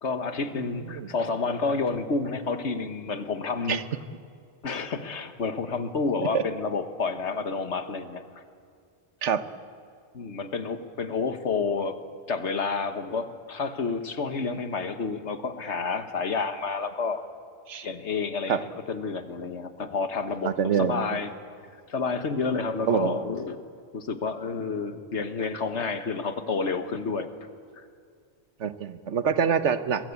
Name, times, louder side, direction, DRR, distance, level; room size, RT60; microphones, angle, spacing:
voice 1, 0.0-3.8 4.6-8.2 10.1-12.0 12.3-17.2 17.8-21.3 21.9-23.6 23.9-27.3, left 4 dB, 80° left, 9 dB, 1.7 m, -29 dB
voice 2, 20.4-21.2 22.9-23.2 28.6-30.1, right 7 dB, 85° right, 12 dB, 1.4 m, -26 dB
23.5 x 22.5 x 8.3 m, 2.2 s
omnidirectional pair, 1.2 m